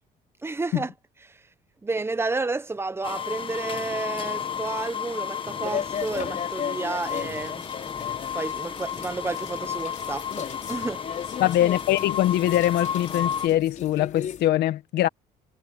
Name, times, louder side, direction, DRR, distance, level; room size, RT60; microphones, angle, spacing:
voice 1, 0.4-0.9 1.2-1.4 1.8-7.6 8.3-11.0, right 3 dB, 15° right, 1.0 m, -31 dB
sound 1, 3.0-13.5, left 8 dB, 30° left, 1.6 m, -32 dB
sound 2, 5.6-14.5, left 8 dB, 50° left, 6.6 m, -37 dB
voice 2, 11.4-15.1, left 13 dB, 75° left, 1.6 m, -22 dB
cardioid pair, 110°, 17 cm